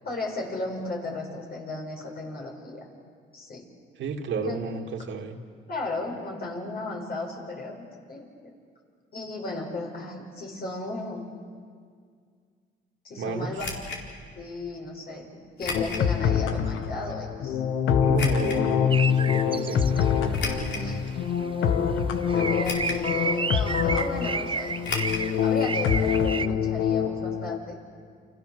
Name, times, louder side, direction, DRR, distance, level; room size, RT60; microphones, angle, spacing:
voice 1, 0.0-2.9 3.3-3.6 4.4-4.6 5.7-8.3 9.1-11.3 13.0-13.7 14.3-17.6 20.8-21.0 22.3-24.7 25.4-27.8, left 2 dB, 50° left, 0 dB, 6.9 m, -35 dB
voice 2, 4.0-5.4 13.2-13.7 18.0-21.2, right 4 dB, 70° right, 2 dB, 2.6 m, -33 dB
sound 1, 13.6-14.0 15.6-16.1 16.6-16.7 18.2-18.6 20.3-20.9 21.5-21.6 22.6-23.1 23.4-23.5 24.8-25.3 25.6-25.7 25.9-26.0, left 3 dB, 65° left, 4.3 m, -33 dB
sound 2, 15.7-27.6, left 7 dB, 85° left, 1.6 m, -25 dB
sound 3, 18.9-20.5 20.7-20.8 21.2-21.5 21.7-26.5, right 5 dB, 25° right, 0.7 m, -32 dB
29.0 x 27.5 x 6.9 m, 2.1 s
cardioid pair, 90°, 20 cm